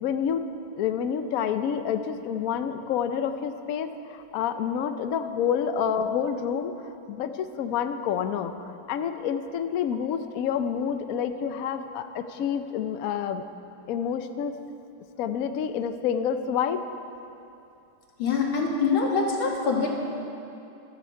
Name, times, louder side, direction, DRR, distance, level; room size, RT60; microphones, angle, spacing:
voice 1, 0.0-0.5 0.8-6.7 7.1-13.4 13.9-14.6 15.2-16.8, left 8 dB, 70° left, 9 dB, 0.8 m, -28 dB
voice 2, 18.2-20.0, left 4 dB, 90° left, -1 dB, 2.6 m, -24 dB
15.5 x 13.5 x 4.6 m, 2.7 s
omnidirectional pair, 2.2 m